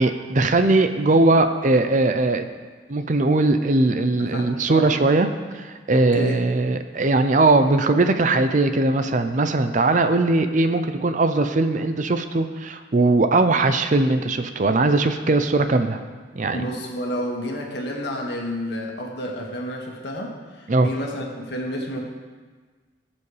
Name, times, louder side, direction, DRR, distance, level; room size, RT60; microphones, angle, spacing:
voice 1, 0.0-2.5 2.9-5.3 5.5-16.0 16.4-16.6 20.7-20.9, right 2 dB, 40° right, 8 dB, 0.5 m, -20 dB
voice 2, 4.2-5.0 5.9-6.5 16.5-22.0, equal, 60° left, -1 dB, 1.8 m, -30 dB
19.0 x 7.0 x 3.3 m, 1.4 s
head